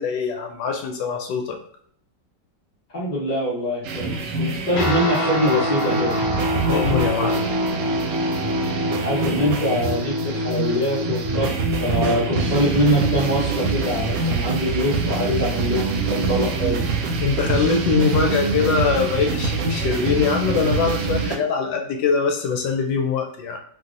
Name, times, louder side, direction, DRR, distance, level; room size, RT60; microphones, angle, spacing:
voice 1, 0.0-1.6 6.7-7.5 17.2-23.6, left 5 dB, 80° left, 3 dB, 1.2 m, -22 dB
voice 2, 2.9-6.1 9.0-16.8, equal, 25° left, -6 dB, 1.1 m, -23 dB
sound 1, 3.8-21.4, right 4 dB, 75° right, 1.1 m, -25 dB
Guitar, 4.7-14.4, left 1 dB, 55° left, 0.7 m, -26 dB
2.9 x 2.7 x 2.5 m, 0.62 s
omnidirectional pair, 2.0 m